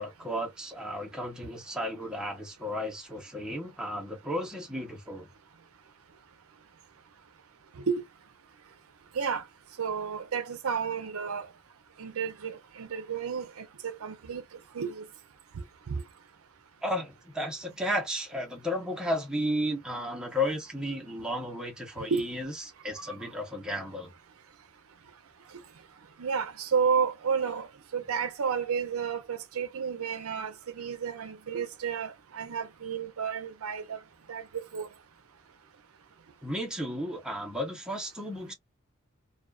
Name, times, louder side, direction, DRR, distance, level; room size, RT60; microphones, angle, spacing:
voice 1, 0.0-5.3 16.8-24.1 36.4-38.5, equal, 5° right, 0.8 m, -33 dB
voice 2, 9.8-11.5 12.0-14.4 14.7-15.0 15.9-16.0 22.0-22.3 23.1-23.2 26.2-27.7 27.9-34.0 34.3-34.9, right 6 dB, 75° right, 0.5 m, -31 dB
2.4 x 2.3 x 2.2 m
head